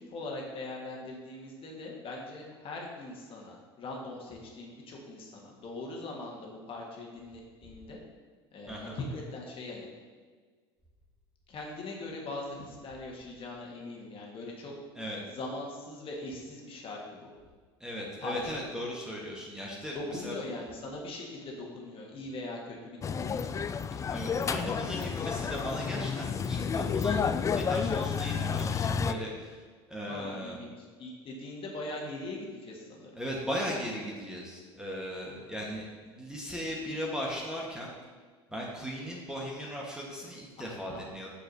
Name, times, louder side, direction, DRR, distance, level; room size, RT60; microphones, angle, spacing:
voice 1, 0.0-8.0 8.5-9.9 11.5-14.7 15.2-17.3 18.2-18.6 19.9-23.6 30.1-33.1 40.6-41.1, left 2 dB, 40° left, -1 dB, 1.5 m, -41 dB
voice 2, 17.8-20.3 24.1-27.2 27.5-29.6 29.9-30.6 33.2-37.9 38.5-41.3, equal, 5° right, -3 dB, 1.4 m, -37 dB
sound 1, 23.0-29.1, left 6 dB, 25° left, 0.3 m, -30 dB
6.7 x 6.3 x 2.8 m, 1.5 s
hypercardioid pair, 75°, 14 cm